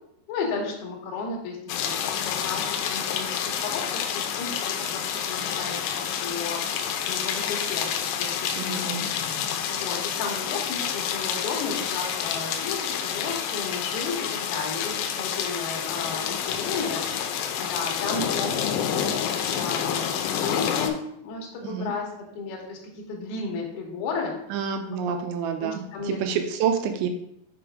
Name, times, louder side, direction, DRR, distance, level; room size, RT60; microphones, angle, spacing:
voice 1, 0.3-1.6 1.8-2.0 2.2-19.2 19.5-24.4 24.7-25.2 25.6-26.2, left 4 dB, 70° left, -2 dB, 2.6 m, -34 dB
sound 1, 1.7-20.9, left 8 dB, 85° left, 3.0 m, -28 dB
voice 2, 8.6-9.1 21.6-21.9 24.5-27.1, right 7 dB, 85° right, 6 dB, 2.8 m, -28 dB
6.9 x 5.0 x 3.5 m, 0.77 s
omnidirectional pair, 5.3 m